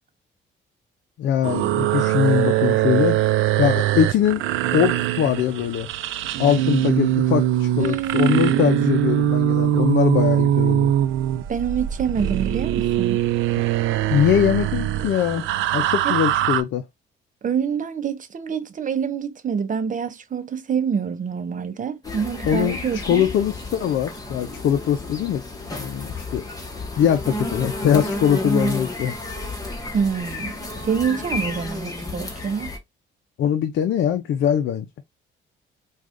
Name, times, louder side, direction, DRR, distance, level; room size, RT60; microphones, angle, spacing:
voice 1, 1.2-3.2 3.6-4.4 4.7-5.9 6.4-10.9 14.1-15.4 15.7-16.8 22.4-25.4 25.8-26.4 27.0-29.1 33.4-34.9, left 9 dB, 70° left, 0.6 m, -22 dB
sound 1, 1.4-16.6, right 13 dB, 85° right, 0.4 m, -22 dB
voice 2, 7.8-8.9 11.5-13.2 16.0-16.2 17.4-23.3 29.9-30.5 30.8-32.7, right 7 dB, 40° right, 0.7 m, -26 dB
sound 2, 22.0-32.8, left 1 dB, 20° left, 1.2 m, -31 dB
4.7 x 2.4 x 2.5 m
cardioid pair, 90°, 20 cm